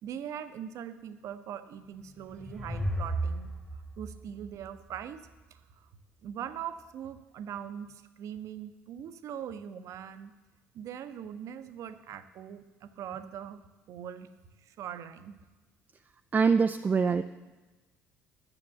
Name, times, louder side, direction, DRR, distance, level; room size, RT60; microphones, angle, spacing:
voice 1, 0.0-5.9 6.2-10.4 10.7-13.6 13.9-15.4, right 9 dB, 50° right, 10 dB, 0.7 m, -42 dB
sound 1, 1.9-5.4, right 1 dB, 5° left, 1.3 m, -35 dB
voice 2, 16.3-17.2, right 5 dB, 25° right, 8 dB, 0.4 m, -24 dB
9.9 x 7.0 x 7.1 m, 1.2 s
figure-of-eight pair, 55°, 7 cm